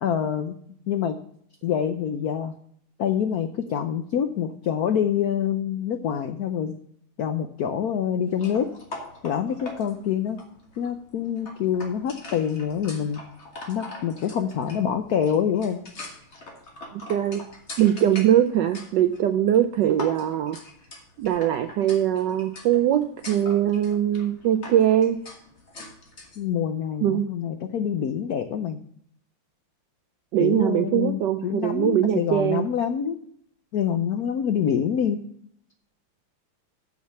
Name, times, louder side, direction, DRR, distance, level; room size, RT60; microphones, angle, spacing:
voice 1, 0.0-0.5 0.9-1.2 1.6-2.5 3.0-6.7 7.2-8.7 9.2-10.4 10.8-13.2 13.7-15.8 26.4-28.8 30.4-33.2 33.7-35.2, left 8 dB, 80° left, 7 dB, 0.8 m, -26 dB
sound 1, 8.3-26.4, left 2 dB, 35° left, 1.6 m, -43 dB
voice 2, 16.9-17.4 17.8-20.6 21.2-25.2 27.0-27.3 30.3-32.7, right 11 dB, 80° right, 8 dB, 1.0 m, -22 dB
7.2 x 6.4 x 6.9 m, 0.65 s
omnidirectional pair, 2.4 m